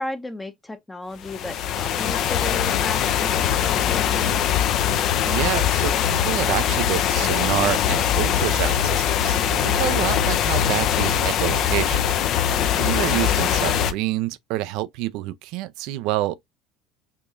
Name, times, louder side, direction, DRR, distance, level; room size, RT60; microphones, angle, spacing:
voice 1, 0.0-4.4, left 1 dB, 15° left, 0.7 m, -34 dB
sound 1, 1.2-13.9, left 9 dB, 55° left, 0.5 m, -22 dB
voice 2, 5.3-12.2 12.8-16.4, right 15 dB, 70° right, 0.3 m, -27 dB
4.7 x 2.7 x 2.3 m
hypercardioid pair, 75°, 0 cm